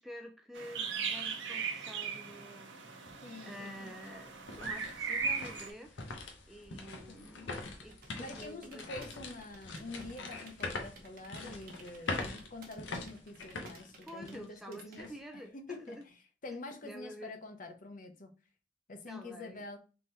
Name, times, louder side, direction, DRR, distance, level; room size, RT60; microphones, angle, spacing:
voice 1, 0.0-6.1 6.5-8.9 12.1-12.4 14.0-16.0 16.8-17.3 19.1-19.6, equal, ahead, 0.4 m, -49 dB
sound 1, 0.5-5.7, right 5 dB, 75° right, 0.9 m, -38 dB
sound 2, 3.0-3.1 3.7-14.6 15.0-15.1 15.7-16.0, left 3 dB, 75° left, 0.9 m, -43 dB
voice 2, 3.2-4.0 7.1-7.5 8.2-16.1 16.4-18.3 18.9-19.8, left 2 dB, 45° left, 0.7 m, -46 dB
sound 3, 7.8-15.0, right 3 dB, 50° right, 0.9 m, -56 dB
3.8 x 2.9 x 3.9 m
head